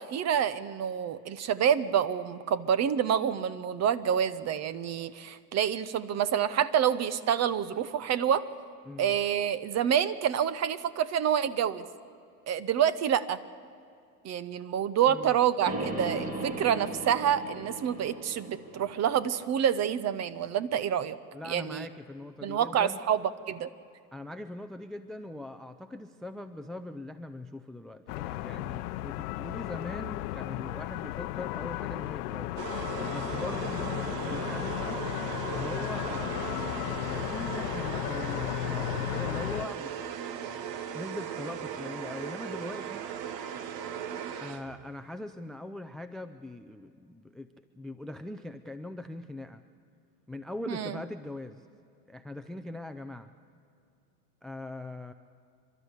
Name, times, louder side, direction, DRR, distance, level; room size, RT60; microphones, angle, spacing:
voice 1, 0.0-8.5 9.0-11.8 12.5-13.4 14.2-21.2 21.4-21.9 22.4-23.2 23.5-23.7 50.7-50.9, right 9 dB, 35° right, 16 dB, 0.9 m, -27 dB
voice 2, 8.8-9.2 15.1-15.4 21.3-23.0 24.1-32.6 33.1-35.1 35.5-40.1 40.9-43.1 44.4-49.6 50.3-51.6 52.1-53.3 54.4-55.1, left 1 dB, ahead, 11 dB, 0.4 m, -41 dB
sound 1, 15.7-19.8, right 2 dB, 15° right, 2.6 m, -37 dB
sound 2, 28.1-39.7, left 17 dB, 70° left, 0.8 m, -34 dB
sound 3, 32.6-44.9, right 8 dB, 50° right, 1.3 m, -38 dB
28.5 x 12.0 x 8.1 m, 2.4 s
hypercardioid pair, 105°, 48 cm